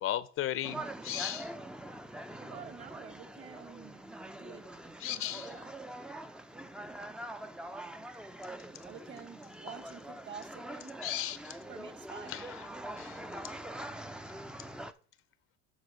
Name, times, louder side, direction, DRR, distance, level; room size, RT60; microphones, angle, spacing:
voice 1, 0.0-1.5 5.0-5.5 11.0-11.5 12.3-12.7 13.0-13.2, left 12 dB, 45° left, 0.6 m, -36 dB
sound 1, 0.6-14.9, right 1 dB, 5° right, 0.5 m, -44 dB
voice 2, 2.4-4.7 5.1-5.9 8.8-10.9 11.4-12.4, right 7 dB, 35° right, 1.5 m, -49 dB
8.0 x 4.0 x 6.2 m
supercardioid pair, 110°, 30 cm